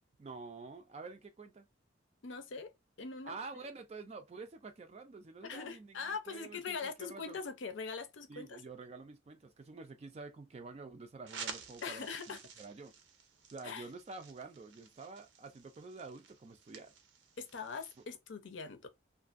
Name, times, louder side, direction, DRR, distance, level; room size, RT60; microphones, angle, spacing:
voice 1, 0.2-1.7 3.2-7.4 8.3-12.9 13.5-16.9, right 3 dB, 35° right, 0.3 m, -48 dB
voice 2, 2.2-2.7 3.0-3.3 5.4-8.6 11.8-12.4 13.6-13.9 17.4-18.9, left 5 dB, 80° left, 0.6 m, -42 dB
sound 1, 11.2-18.0, right 6 dB, 80° right, 0.6 m, -51 dB
2.5 x 2.4 x 2.4 m
head